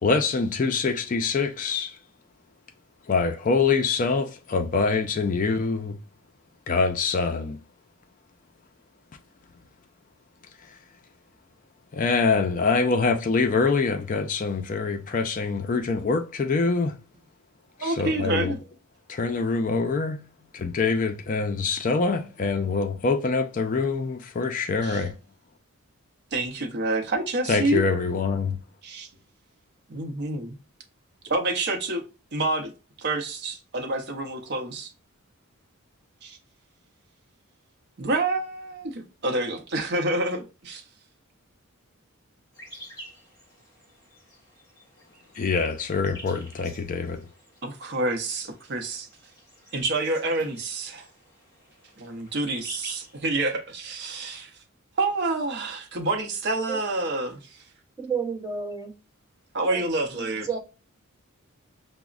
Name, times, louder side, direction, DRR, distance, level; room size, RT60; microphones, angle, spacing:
voice 1, 0.0-2.0 3.1-6.0 6.7-7.6 11.9-17.0 17.8-18.5 19.1-20.2 20.5-25.1 27.5-28.6 45.3-47.2, left 4 dB, 35° left, 0.3 m, -25 dB
voice 2, 17.8-18.6 24.8-25.0 26.3-27.8 28.8-29.1 29.9-30.6 31.2-32.0 32.3-32.7 33.0-34.9 36.2-36.4 38.0-40.8 47.6-49.1 49.7-51.1 52.0-54.5 55.0-57.6 59.5-60.5, right 2 dB, 50° right, 0.6 m, -28 dB
sound 1, 42.5-53.3, equal, 15° left, 1.4 m, -48 dB
voice 3, 58.0-58.9 59.7-59.8 60.1-60.6, right 6 dB, 15° right, 0.8 m, -31 dB
5.8 x 2.0 x 2.4 m
head